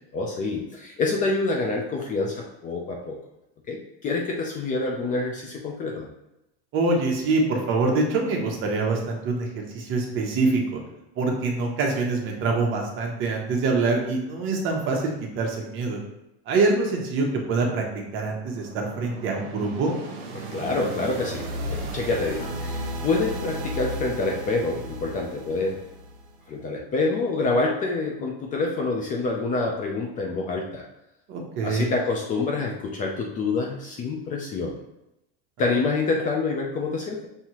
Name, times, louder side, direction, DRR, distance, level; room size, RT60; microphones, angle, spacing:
voice 1, 0.1-3.2 3.7-6.1 20.3-25.8 26.5-30.9 31.6-34.8 35.6-37.3, left 3 dB, 25° left, 0 dB, 0.5 m, -27 dB
voice 2, 6.7-9.5 9.7-10.8 11.2-16.0 16.5-17.8 18.1-19.9 31.3-31.9, right 3 dB, 40° right, 1 dB, 0.9 m, -25 dB
sound 1, 18.0-26.5, right 1 dB, 65° right, 1.0 m, -35 dB
5.6 x 2.8 x 3.0 m, 0.90 s
supercardioid pair, 140°, 31 cm